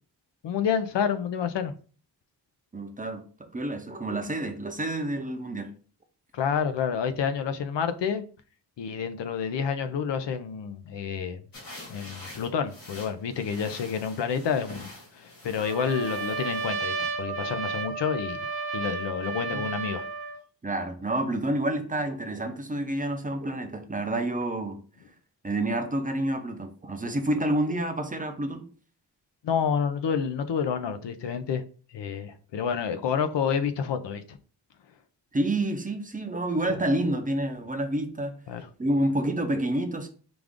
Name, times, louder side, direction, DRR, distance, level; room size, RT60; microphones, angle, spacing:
voice 1, 0.4-1.7 6.3-8.2 8.8-11.4 11.9-14.9 15.2-18.4 18.7-20.1 29.4-31.6 31.9-34.4 38.5-38.7, left 7 dB, 85° left, 0.6 m, -29 dB
voice 2, 2.7-5.7 19.5-19.6 20.6-24.8 25.4-28.7 35.3-38.3 38.8-40.1, right 1 dB, 20° right, 0.5 m, -28 dB
sound 1, 11.5-16.8, left 2 dB, 55° left, 1.5 m, -46 dB
Trumpet, 15.6-20.4, right 4 dB, 65° right, 0.8 m, -32 dB
5.0 x 2.5 x 3.6 m
wide cardioid pair, 155°, 42 cm